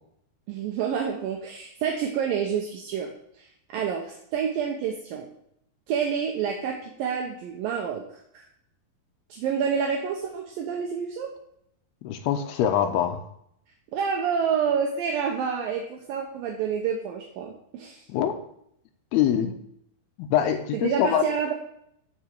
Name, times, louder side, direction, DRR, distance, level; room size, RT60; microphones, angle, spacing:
voice 1, 0.5-3.1 3.4-3.5 3.7-5.3 5.9-8.4 9.3-11.3 13.9-18.0 20.7-21.5, right 7 dB, 75° right, 1 dB, 2.5 m, -28 dB
voice 2, 12.0-13.2 18.1-18.4 19.1-19.6 20.2-21.2, left 9 dB, 90° left, 8 dB, 2.8 m, -24 dB
14.0 x 4.7 x 4.6 m, 0.72 s
omnidirectional pair, 4.4 m